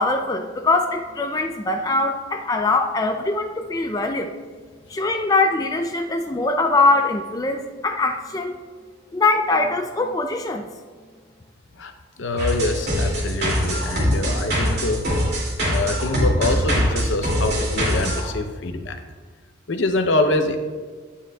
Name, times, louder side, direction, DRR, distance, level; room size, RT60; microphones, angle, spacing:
voice 1, 0.0-4.3 4.9-8.5 9.1-10.7, left 3 dB, 20° left, 4 dB, 0.3 m, -22 dB
voice 2, 12.2-15.2 15.6-19.0 19.7-20.6, left 2 dB, 75° left, 7 dB, 0.7 m, -24 dB
sound 1, 12.4-18.2, equal, 55° right, 2.5 m, -22 dB
11.5 x 8.5 x 2.3 m, 1.5 s
head